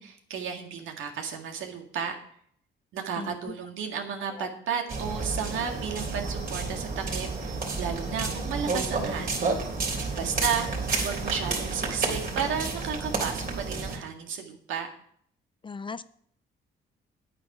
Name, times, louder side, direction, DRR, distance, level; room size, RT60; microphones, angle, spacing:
voice 1, 0.0-2.2 2.9-14.9, right 7 dB, 85° right, 3 dB, 1.9 m, -33 dB
voice 2, 3.2-3.6 4.4-4.5 15.6-16.0, left 4 dB, 25° left, 15 dB, 0.5 m, -38 dB
sound 1, 4.9-14.0, right 3 dB, 45° right, 3.2 m, -31 dB
9.3 x 8.8 x 4.8 m, 0.63 s
cardioid pair, 90°, 20 cm